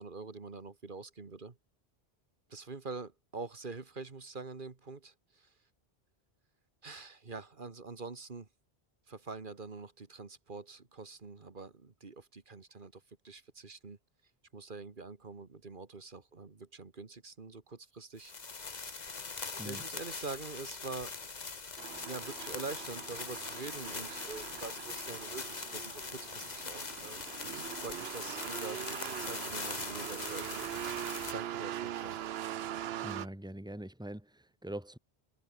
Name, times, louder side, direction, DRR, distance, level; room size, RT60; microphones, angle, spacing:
voice 1, 0.0-1.6 2.5-5.5 6.8-8.5 9.1-14.0 14.5-18.3 18.6-19.0 19.6-21.2 22.1-32.2, right 4 dB, 55° right, 1.9 m, -45 dB
sound 1, 18.2-31.3, left 4 dB, 45° left, 1.4 m, -42 dB
sound 2, 21.8-33.3, right 11 dB, 75° right, 0.9 m, -42 dB
voice 2, 33.0-35.0, right 1 dB, 5° right, 2.3 m, -43 dB
omnidirectional pair, 1.1 m